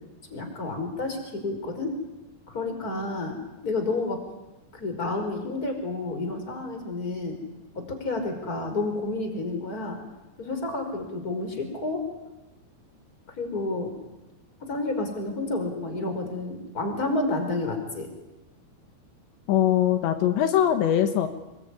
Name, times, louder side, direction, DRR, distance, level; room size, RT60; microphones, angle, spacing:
voice 1, 0.3-1.9 2.5-4.2 4.7-7.4 7.7-10.0 10.4-12.0 13.4-13.9 14.6-18.1, left 2 dB, 20° left, 5 dB, 5.1 m, -30 dB
voice 2, 19.5-21.3, left 10 dB, 80° left, 8 dB, 3.6 m, -22 dB
27.0 x 22.5 x 9.8 m, 1.0 s
omnidirectional pair, 5.2 m